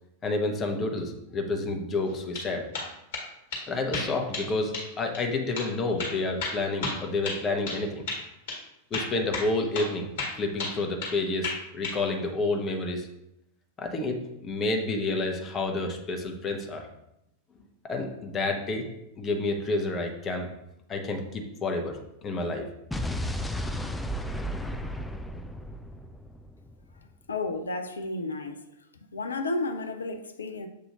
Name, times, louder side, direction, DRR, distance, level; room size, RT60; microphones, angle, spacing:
voice 1, 0.2-2.6 3.7-8.0 8.9-10.1 10.4-13.1 13.8-16.9 17.8-18.9 19.2-20.5 20.9-22.7, left 2 dB, 25° left, 3 dB, 0.8 m, -29 dB
sound 1, 2.1-2.5 2.7-3.3 3.5-3.6 3.9-4.5 4.7-4.9 5.1-5.2 5.6-5.7 6.0-7.8 8.1-8.2 8.5-8.6 8.9-9.9 10.2-11.2 11.4-12.0, left 3 dB, 55° left, 1.5 m, -33 dB
Explosion, 22.9-27.0, equal, 5° left, 0.3 m, -33 dB
voice 2, 27.3-28.6 29.1-30.7, left 2 dB, 70° left, 6 dB, 0.4 m, -32 dB
7.2 x 2.7 x 2.8 m, 0.84 s
figure-of-eight pair, 90°, 0 cm